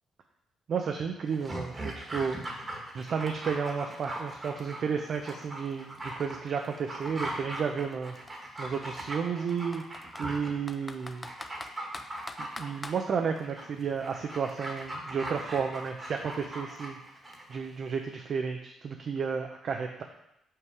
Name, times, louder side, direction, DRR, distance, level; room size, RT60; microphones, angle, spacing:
voice 1, 0.7-2.4 2.9-9.9 10.2-11.3 12.4-17.0 17.5-20.0, right 6 dB, 55° right, 4 dB, 0.6 m, -32 dB
Dog, 1.3-17.6 17.9-18.0, right 1 dB, 25° right, 1.5 m, -40 dB
Computer keyboard, 4.7-4.8 5.1-7.0 7.8-8.0 8.3-8.4 9.0-10.3 10.7-13.0, left 2 dB, 20° left, 0.5 m, -44 dB
5.7 x 5.5 x 4.7 m, 0.85 s
cardioid pair, 90°, 0 cm